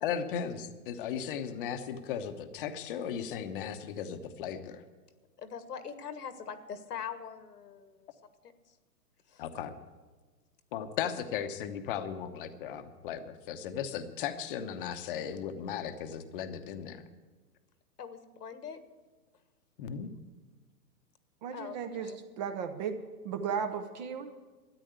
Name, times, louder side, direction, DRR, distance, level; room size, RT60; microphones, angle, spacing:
voice 1, 0.0-4.8 9.4-9.7 10.7-17.0 19.8-20.1, left 8 dB, 35° left, 9 dB, 1.0 m, -36 dB
voice 2, 5.4-8.1 8.7-8.8 9.3-9.4 11.0-11.1 18.0-18.8 21.5-21.8 22.0-22.2, left 7 dB, 75° left, 10 dB, 1.6 m, -42 dB
voice 3, 21.4-22.1 22.4-22.9 23.2-24.3, right 7 dB, 25° right, 8 dB, 0.8 m, -35 dB
13.0 x 9.9 x 8.0 m, 1.3 s
hypercardioid pair, 145°, 48 cm